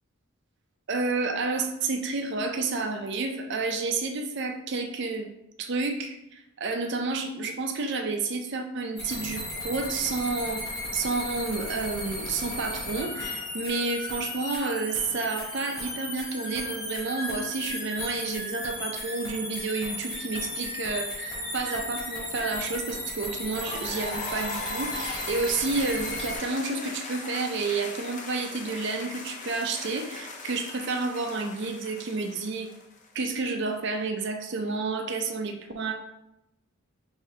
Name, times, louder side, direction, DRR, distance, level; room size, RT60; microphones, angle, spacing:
voice 1, 0.9-5.3 5.6-32.7 33.1-35.9, right 3 dB, 50° right, 4 dB, 0.5 m, -30 dB
sound 1, 9.0-26.4, left 1 dB, 20° left, 1.5 m, -35 dB
sound 2, 23.5-33.3, left 3 dB, 35° left, 0.4 m, -39 dB
4.8 x 2.7 x 3.3 m, 0.86 s
head